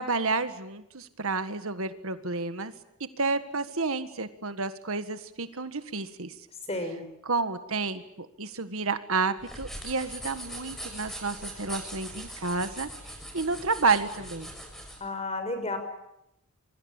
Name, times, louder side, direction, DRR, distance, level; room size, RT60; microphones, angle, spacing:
voice 1, 0.0-2.7 3.2-6.3 7.2-12.9 13.3-14.5, right 3 dB, 65° right, 10 dB, 1.7 m, -30 dB
voice 2, 6.7-7.0 15.0-15.8, left 2 dB, 30° left, 8 dB, 6.0 m, -32 dB
sound 1, 9.4-15.0, right 1 dB, ahead, 6.4 m, -41 dB
27.5 x 23.5 x 8.9 m, 0.81 s
head